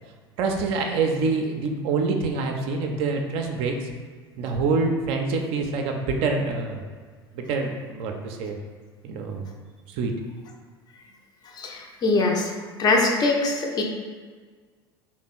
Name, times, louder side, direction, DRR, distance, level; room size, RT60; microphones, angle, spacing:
voice 1, 0.4-3.9 4.4-6.8 7.3-8.6 9.0-9.5 9.9-10.1, right 4 dB, 45° right, 3 dB, 0.4 m, -26 dB
voice 2, 11.5-12.5 12.8-13.8, left 3 dB, 30° left, 1 dB, 0.5 m, -22 dB
2.9 x 2.0 x 4.0 m, 1.5 s
figure-of-eight pair, 70°, 13 cm